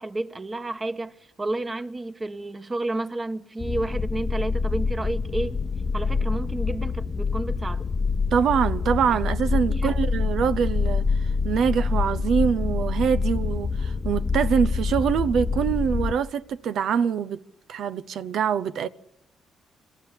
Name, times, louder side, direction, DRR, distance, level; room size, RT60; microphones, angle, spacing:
voice 1, 0.0-5.6 5.9-7.9 9.7-10.0, right 2 dB, 25° right, 1.4 m, -31 dB
sound 1, 3.6-16.1, left 4 dB, 35° left, 0.9 m, -26 dB
voice 2, 8.3-11.1 11.4-17.4 17.7-18.9, right 7 dB, 70° right, 0.8 m, -24 dB
26.0 x 14.0 x 9.9 m
cardioid pair, 90°, 0 cm